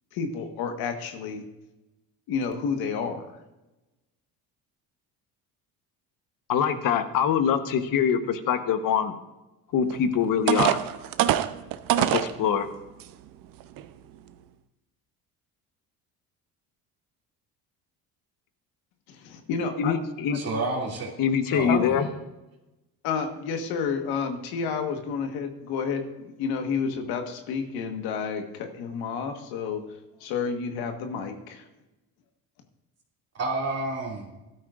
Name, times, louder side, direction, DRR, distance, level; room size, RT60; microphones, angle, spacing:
voice 1, 0.1-1.4 2.3-3.4 19.1-19.9 20.3-20.4 21.7-22.1 23.0-29.8 30.2-31.7, left 5 dB, 85° left, 5 dB, 1.5 m, -30 dB
voice 2, 6.5-9.2 9.7-10.8 12.0-12.7 19.8-20.4 21.2-22.0, left 7 dB, 60° left, 9 dB, 1.2 m, -24 dB
sound 1, 9.9-10.0 10.5-12.3 13.0-13.1 13.6-13.8, right 12 dB, 65° right, 0.7 m, -23 dB
voice 3, 20.3-21.1 21.5-22.0 33.3-34.3, right 2 dB, 40° right, -1 dB, 2.6 m, -30 dB
14.5 x 12.5 x 2.5 m, 1.0 s
cardioid pair, 110°, 37 cm